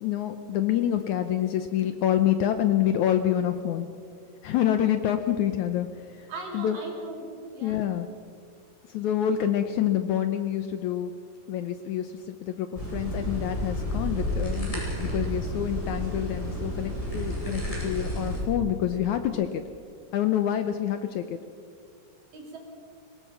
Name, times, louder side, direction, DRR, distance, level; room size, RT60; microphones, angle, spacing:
voice 1, 0.0-3.9 4.4-5.9 6.5-6.8 7.6-8.1 8.9-11.1 11.5-19.6 20.1-21.2, left 10 dB, 75° left, 8 dB, 1.9 m, -27 dB
voice 2, 6.3-7.8 22.3-22.6, right 2 dB, 70° right, 0 dB, 6.0 m, -39 dB
sound 1, 12.8-18.4, equal, 10° left, 5.5 m, -31 dB
24.0 x 20.0 x 5.9 m, 2.2 s
omnidirectional pair, 4.1 m